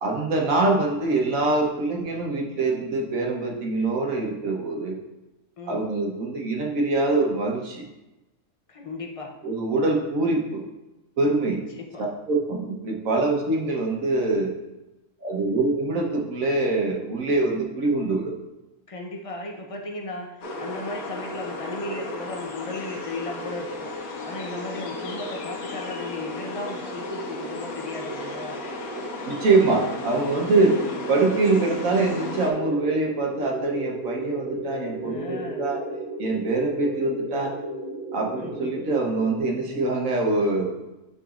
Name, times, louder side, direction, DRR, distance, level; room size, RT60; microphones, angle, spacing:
voice 1, 0.0-5.0 5.7-7.9 9.4-10.6 11.2-11.6 12.3-14.5 15.2-18.3 29.3-30.7 31.1-35.8 36.2-37.6 38.1-40.8, right 3 dB, 65° right, 0 dB, 1.3 m, -24 dB
voice 2, 8.7-9.4 11.7-12.1 18.9-28.6 30.5-31.0 35.0-35.6 38.4-38.7, left 2 dB, 40° left, 1 dB, 0.5 m, -36 dB
sound 1, 20.4-32.5, left 3 dB, 75° left, 1.3 m, -37 dB
sound 2, 20.4-39.4, right 1 dB, 35° right, 1.4 m, -36 dB
9.8 x 4.0 x 2.5 m, 1.0 s
omnidirectional pair, 1.5 m